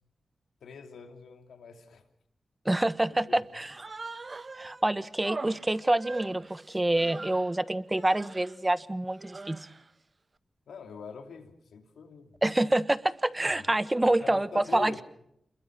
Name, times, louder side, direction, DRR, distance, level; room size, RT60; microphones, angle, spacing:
voice 1, 0.6-2.0 3.1-3.4 10.7-12.3 13.5-13.7 14.2-15.0, left 5 dB, 90° left, 6 dB, 2.9 m, -45 dB
voice 2, 2.6-3.8 4.6-9.6 12.4-15.0, right 1 dB, 20° right, 14 dB, 1.4 m, -27 dB
Human voice, 3.7-4.8 5.2-7.6 7.9-8.6 9.1-9.9, right 3 dB, 45° right, 1.2 m, -42 dB
29.0 x 22.0 x 6.0 m, 0.74 s
cardioid pair, 55°, 0 cm